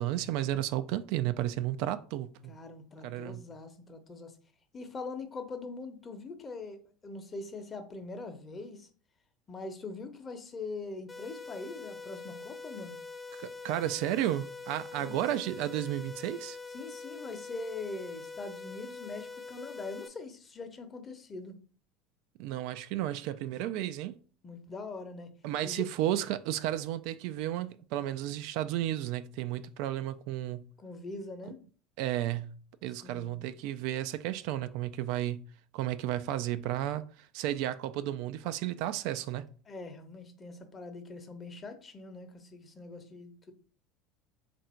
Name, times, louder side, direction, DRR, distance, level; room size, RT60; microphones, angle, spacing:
voice 1, 0.0-2.5 3.0-3.4 13.4-16.6 22.4-24.1 25.4-30.6 32.0-32.5 32.8-35.4 35.7-37.0 37.3-39.5, right 13 dB, 65° right, 0.3 m, -33 dB
voice 2, 2.5-4.3 4.7-8.9 9.5-13.0 15.0-15.2 16.7-21.6 24.4-25.3 25.6-25.9 30.8-31.6 32.9-33.5 39.7-43.5, left 3 dB, 30° left, 0.8 m, -42 dB
sound 1, 11.1-20.1, left 4 dB, 15° left, 0.4 m, -44 dB
3.4 x 2.6 x 4.3 m
hypercardioid pair, 85°, 0 cm